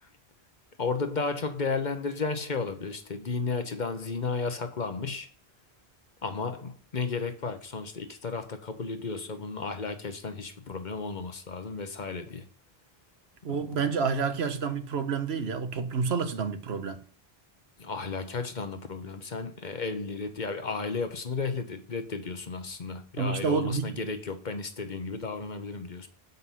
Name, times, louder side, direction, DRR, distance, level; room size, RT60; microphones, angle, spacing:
voice 1, 0.8-5.3 6.2-12.4 13.7-13.8 17.8-26.1, left 4 dB, 50° left, 1.0 m, -33 dB
voice 2, 13.4-17.0 23.2-23.9, right 5 dB, 75° right, 1.2 m, -29 dB
7.7 x 5.4 x 5.6 m
omnidirectional pair, 1.1 m